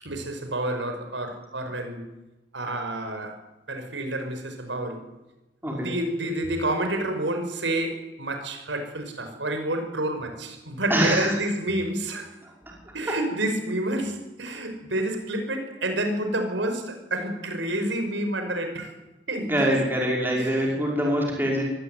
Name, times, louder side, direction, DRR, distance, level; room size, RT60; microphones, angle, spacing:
voice 1, 0.0-2.1 2.5-3.4 3.7-5.0 5.6-12.3 12.9-18.9 19.3-19.8 20.3-20.8, right 1 dB, 85° right, 6 dB, 5.8 m, -29 dB
voice 2, 10.9-11.3 12.6-12.7 13.1-13.2 19.4-21.6, equal, 10° right, -2 dB, 5.5 m, -24 dB
26.0 x 19.5 x 9.4 m, 1.0 s
head